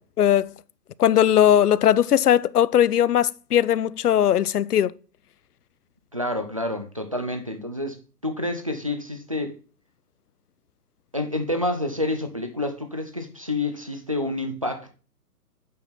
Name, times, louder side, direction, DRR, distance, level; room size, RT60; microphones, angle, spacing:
voice 1, 0.2-0.5 1.0-4.9, left 10 dB, 70° left, 0.5 m, -19 dB
voice 2, 6.1-9.5 11.1-14.9, left 1 dB, 25° right, 0.4 m, -28 dB
8.4 x 4.1 x 4.3 m
figure-of-eight pair, 140°, 48 cm